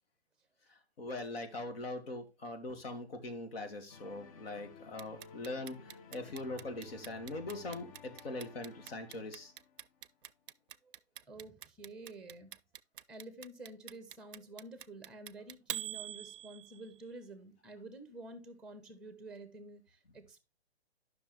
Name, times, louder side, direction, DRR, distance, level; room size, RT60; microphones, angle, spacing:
voice 1, 0.7-9.5, left 2 dB, 65° left, 2.0 m, -42 dB
sound 1, 3.9-10.1, left 5 dB, 35° left, 0.6 m, -55 dB
Clock, 5.0-17.0, right 11 dB, 55° right, 0.5 m, -45 dB
voice 2, 11.3-12.6 13.1-20.4, right 2 dB, ahead, 0.9 m, -50 dB
10.5 x 6.0 x 3.1 m
hypercardioid pair, 135°, 32 cm